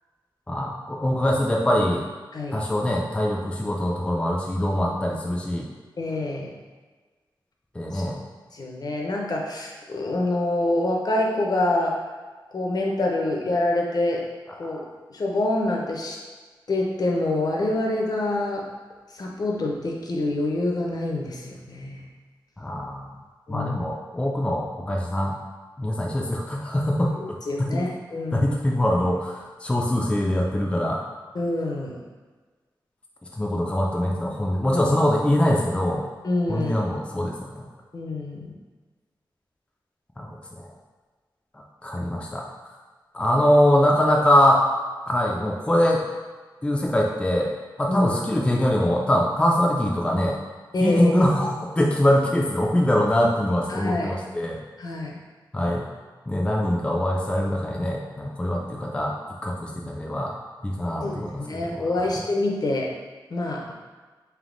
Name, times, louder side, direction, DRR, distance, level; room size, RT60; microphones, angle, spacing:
voice 1, 0.5-2.1 2.5-5.7 7.7-8.2 14.6-14.8 22.6-23.1 23.5-25.3 25.8-27.9 28.3-31.0 33.3-36.1 36.5-37.7 40.2-40.7 41.5-42.8 43.1-44.7 45.1-46.0 46.6-47.5 47.8-50.4 50.8-54.6 55.5-55.9 56.3-59.2 59.4-60.4 60.6-62.2, left 1 dB, 15° left, -2 dB, 0.4 m, -23 dB
voice 2, 6.0-6.5 7.9-8.0 8.5-12.0 12.5-14.2 14.6-14.8 15.1-16.2 16.7-18.7 19.1-22.1 23.5-23.8 27.5-28.6 31.3-31.9 36.2-36.8 37.9-38.5 47.9-48.1 50.7-51.2 53.7-54.1 54.8-55.2 61.0-62.9 63.3-63.7, left 2 dB, 55° left, -1 dB, 0.6 m, -26 dB
3.4 x 2.7 x 3.8 m, 1.4 s
wide cardioid pair, 115°, 8 cm